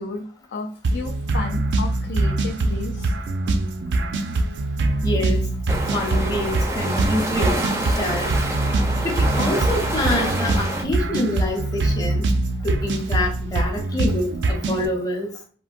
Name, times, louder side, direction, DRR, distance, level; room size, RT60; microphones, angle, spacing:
voice 1, 0.0-3.1, left 3 dB, 70° left, 0.4 m, -32 dB
sound 1, 0.8-14.9, right 2 dB, 85° right, 0.4 m, -23 dB
voice 2, 5.0-7.6 7.8-8.3 9.0-12.3 12.6-15.3, left 1 dB, 20° left, 0.6 m, -26 dB
sound 2, 5.7-10.8, right 1 dB, 15° right, 0.3 m, -27 dB
3.7 x 2.1 x 2.5 m
head